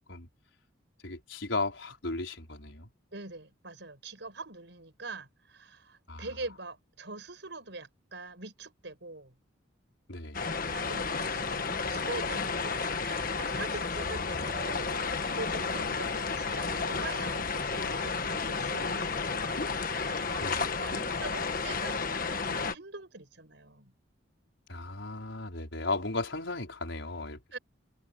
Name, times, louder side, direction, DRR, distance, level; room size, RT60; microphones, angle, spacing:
voice 1, 1.0-2.9 6.1-6.3 10.1-10.4 20.4-20.6 24.7-27.6, left 3 dB, 75° left, 5.3 m, -35 dB
voice 2, 3.1-9.3 10.7-23.9 27.5-27.6, right 3 dB, 65° right, 6.1 m, -43 dB
sound 1, 10.3-22.7, left 4 dB, 45° left, 1.4 m, -32 dB
open air
head